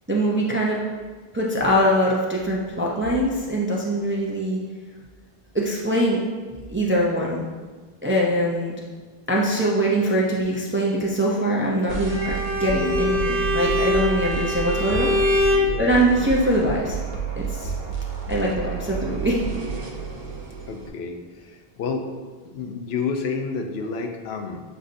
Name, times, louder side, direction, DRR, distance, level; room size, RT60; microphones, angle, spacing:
voice 1, 0.1-0.8 1.3-4.6 5.5-6.2 6.7-7.4 8.0-8.7 9.3-15.1 15.8-17.0 17.4-17.7 18.3-19.4, equal, 20° right, -3 dB, 0.3 m, -22 dB
sound 1, 11.9-20.9, right 7 dB, 70° right, 0.9 m, -30 dB
Bowed string instrument, 12.0-15.7, left 2 dB, 20° left, 0.7 m, -23 dB
voice 2, 20.7-22.1 22.4-24.6, left 5 dB, 80° left, 4 dB, 0.8 m, -30 dB
7.8 x 2.7 x 2.5 m, 1.4 s
omnidirectional pair, 1.0 m